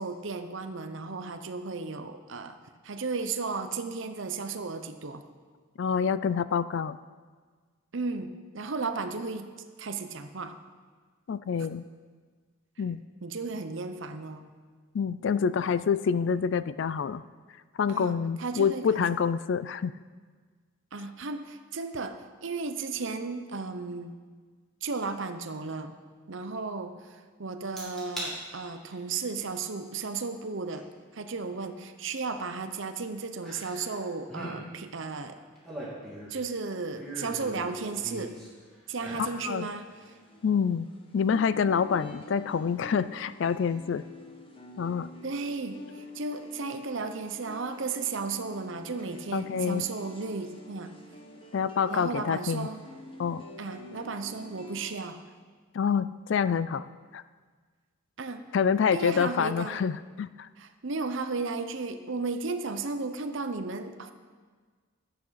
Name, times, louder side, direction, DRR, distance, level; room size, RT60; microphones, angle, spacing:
voice 1, 0.0-2.6 2.8-5.2 7.9-9.5 9.8-10.6 13.2-14.5 17.9-19.2 20.9-24.1 24.8-25.9 26.3-30.9 31.1-35.4 36.3-38.4 38.9-39.9 45.2-51.0 51.9-52.8 53.6-55.2 58.2-58.6 58.9-59.8 60.6-64.1, right 4 dB, 60° right, 8 dB, 0.7 m, -34 dB
voice 2, 5.8-7.0 11.3-11.8 12.8-13.0 14.9-17.2 17.8-19.9 39.4-39.7 40.4-40.9 41.1-44.0 44.8-45.1 49.3-49.8 51.5-52.7 53.2-53.4 55.7-56.9 57.1-57.2 58.5-60.5, left 6 dB, 55° left, 16 dB, 0.3 m, -27 dB
sound 1, 27.8-28.3 28.8-29.2 30.7-30.8 33.4-34.0 34.2-34.6 35.4-36.4 37.0-38.5 38.9-39.4 39.8-39.9, right 1 dB, ahead, 2.6 m, -40 dB
sound 2, 39.8-54.9, left 1 dB, 25° left, 1.1 m, -48 dB
12.0 x 8.5 x 5.8 m, 1.5 s
head